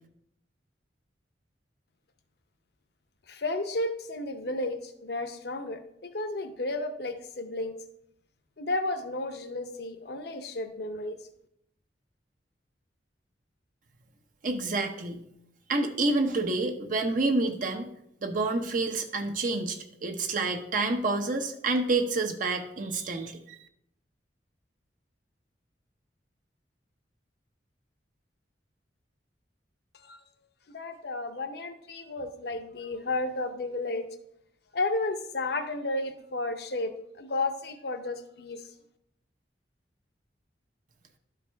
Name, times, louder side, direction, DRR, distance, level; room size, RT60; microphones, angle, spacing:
voice 1, 3.3-7.7 8.6-11.2 30.0-30.2 30.7-34.0 34.7-36.9 37.2-38.6, left 2 dB, 60° left, 8 dB, 0.8 m, -32 dB
voice 2, 14.4-15.2 15.7-17.9 18.2-23.6, right 3 dB, 45° right, 5 dB, 0.7 m, -28 dB
12.0 x 4.7 x 3.4 m, 0.75 s
head